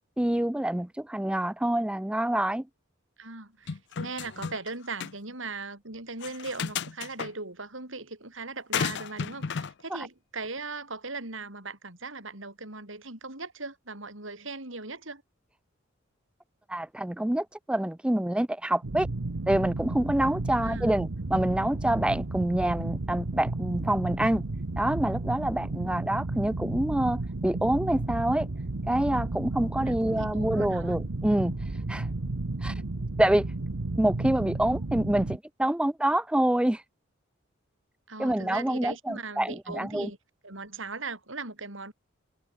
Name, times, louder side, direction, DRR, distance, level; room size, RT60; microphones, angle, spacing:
voice 1, 0.2-2.7 10.0-10.1 16.7-19.1 19.5-24.5 24.8-28.5 28.9-31.6 31.9-32.1 32.6-32.7 33.2-33.5 34.0-36.8 38.2-40.1, right 1 dB, 5° right, 0.3 m, -26 dB
voice 2, 3.2-15.2 20.5-21.0 25.7-26.0 29.8-31.0 38.1-40.2 40.4-41.9, right 3 dB, 65° right, 5.5 m, -39 dB
sound 1, 3.7-4.7 5.0-5.1 6.2-7.3 8.7-9.7, left 6 dB, 55° left, 0.6 m, -33 dB
sound 2, 18.8-35.4, right 2 dB, 85° right, 1.1 m, -33 dB
head